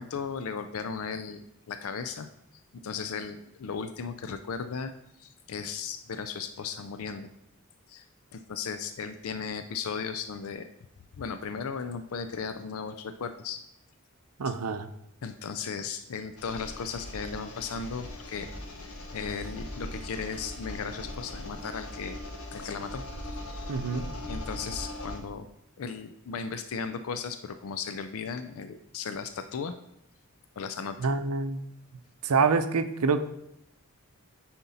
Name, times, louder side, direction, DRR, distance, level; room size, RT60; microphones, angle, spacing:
voice 1, 0.0-2.3 2.7-4.9 5.2-7.3 7.9-8.0 8.3-10.7 11.2-13.6 14.5-14.6 15.2-18.5 19.1-22.2 22.5-23.7 24.3-25.5 25.8-29.8 30.6-31.1, left 5 dB, 70° left, 10 dB, 0.4 m, -36 dB
voice 2, 14.4-14.9 23.7-24.1 31.0-31.6 32.2-33.2, right 4 dB, 85° right, 10 dB, 0.6 m, -26 dB
sound 1, 16.4-25.2, left 1 dB, 85° left, 1.1 m, -40 dB
9.3 x 4.4 x 4.1 m, 0.78 s
head